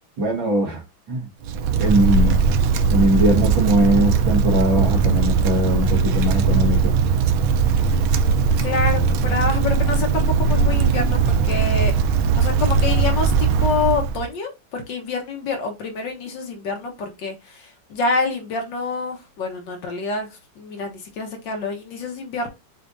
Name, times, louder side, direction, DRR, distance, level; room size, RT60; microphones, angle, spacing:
voice 1, 0.2-0.8 1.1-1.3 1.7-2.4 2.9-7.0, right 1 dB, 70° right, 2.3 m, -20 dB
Wind, 1.4-14.3, right 5 dB, 90° right, 1.5 m, -19 dB
voice 2, 8.6-11.9 12.4-22.5, left 4 dB, 65° left, 1.8 m, -27 dB
6.9 x 2.5 x 2.5 m
omnidirectional pair, 2.2 m